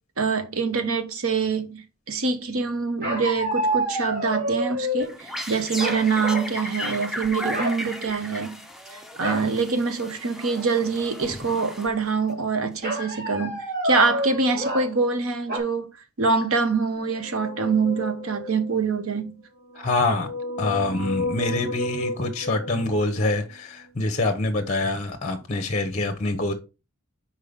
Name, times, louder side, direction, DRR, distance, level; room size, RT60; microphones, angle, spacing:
voice 1, 0.2-8.6 8.9-15.9 16.2-19.4, right 4 dB, 70° right, 1.0 m, -25 dB
sound 1, 3.0-5.1 5.8-6.5 6.8-7.1 7.5-7.8 9.2-9.5 10.0-10.1 10.4-10.9 12.8-14.9 15.5-15.6, right 1 dB, 50° right, 2.1 m, -28 dB
sound 2, 5.0-12.3, left 1 dB, ahead, 0.7 m, -35 dB
sound 3, 17.1-18.8 19.6-23.5, left 1 dB, 30° right, 1.6 m, -33 dB
voice 2, 19.7-20.3 20.6-26.5, left 2 dB, 30° left, 0.8 m, -25 dB
5.5 x 4.4 x 5.1 m
head